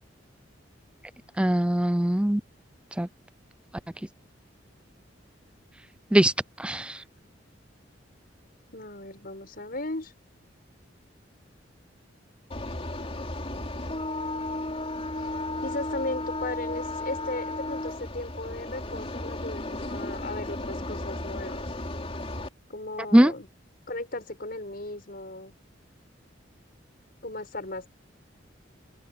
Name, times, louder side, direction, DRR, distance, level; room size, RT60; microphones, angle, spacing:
voice 1, 1.4-2.4 3.0-3.1 6.1-6.3 6.6-7.0 23.1-23.3, right 1 dB, 5° right, 0.5 m, -20 dB
voice 2, 8.7-10.1 15.2-15.3 15.6-21.6 22.7-23.5 23.9-25.5 27.2-27.9, left 2 dB, 50° left, 6.2 m, -36 dB
sound 1, 12.5-22.5, left 2 dB, 30° left, 3.5 m, -34 dB
open air
head